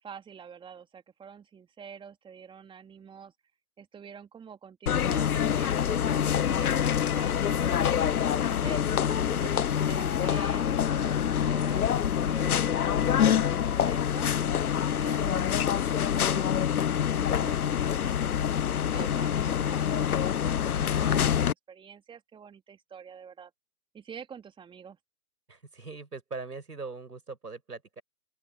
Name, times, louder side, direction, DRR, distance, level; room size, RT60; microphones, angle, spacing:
voice 1, 0.0-3.3 3.8-8.8 9.3-14.3 14.9-15.7 18.9-23.5 23.9-25.0, right 7 dB, 10° right, 2.7 m, -47 dB
sound 1, 4.9-21.5, left 9 dB, 70° left, 1.0 m, -26 dB
voice 2, 16.0-16.5 17.0-17.7 25.5-28.0, right 4 dB, 85° right, 6.2 m, -42 dB
open air
figure-of-eight pair, 125°, 46 cm